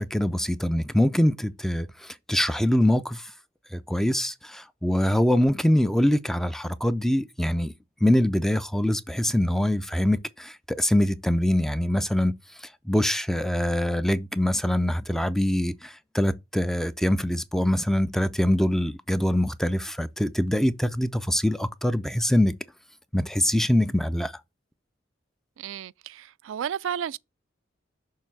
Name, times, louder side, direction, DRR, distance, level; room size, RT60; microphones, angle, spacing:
voice 1, 0.0-1.9 2.3-3.2 3.7-7.7 8.0-12.3 12.9-22.5 23.1-24.3, left 1 dB, ahead, 0.4 m, -24 dB
voice 2, 25.6-27.2, right 9 dB, 85° right, 0.3 m, -32 dB
6.6 x 3.4 x 6.0 m
head